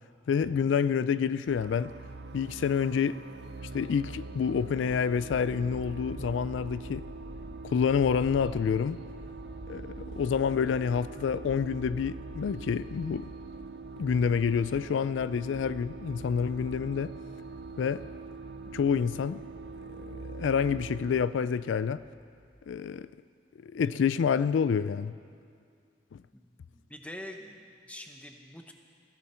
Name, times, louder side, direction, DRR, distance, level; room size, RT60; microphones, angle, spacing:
voice 1, 0.3-1.9 2.3-3.2 3.7-7.0 7.6-9.0 9.7-13.3 14.0-17.1 17.8-18.0 18.7-19.4 20.0-22.0 22.7-23.1 23.6-25.1 26.1-26.2, left 6 dB, 80° left, 0.3 m, -28 dB
sound 1, 1.5-21.3, right 3 dB, 55° right, 0.5 m, -43 dB
sound 2, 19.8-22.8, left 1 dB, 65° left, 3.1 m, -50 dB
voice 2, 26.3-28.7, left 1 dB, 5° left, 0.9 m, -45 dB
16.5 x 16.5 x 4.3 m
head